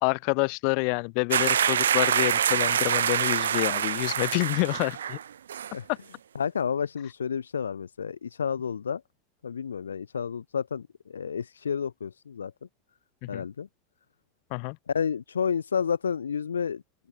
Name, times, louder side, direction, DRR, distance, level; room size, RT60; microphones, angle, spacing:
voice 1, 0.0-5.2 13.2-13.4 14.5-14.8, left 40 dB or more, 55° left, 0.9 m, -28 dB
sound 1, 1.3-5.2 5.5-5.7, right 9 dB, 75° right, 0.3 m, -25 dB
voice 2, 6.3-9.0 9.4-12.5 13.3-13.7 14.9-16.8, left 7 dB, 80° left, 0.4 m, -30 dB
open air
figure-of-eight pair, 85°, 0 cm